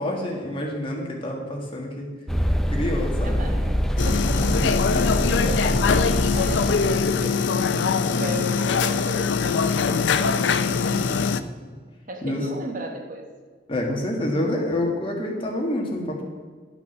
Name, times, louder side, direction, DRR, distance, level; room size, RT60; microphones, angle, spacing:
voice 1, 0.0-2.1 2.7-3.5 4.3-4.5 8.1-8.4 12.2-12.5 13.7-16.2, left 1 dB, 30° left, 0 dB, 1.7 m, -27 dB
sound 1, 2.3-7.2, equal, ahead, 0.4 m, -24 dB
voice 2, 3.2-5.7 6.3-7.7 8.2-11.3 12.1-13.3, right 1 dB, 45° right, 4 dB, 1.0 m, -36 dB
sound 2, 4.0-11.4, left 5 dB, 70° left, 0.5 m, -22 dB
11.0 x 6.0 x 6.0 m, 1.5 s
head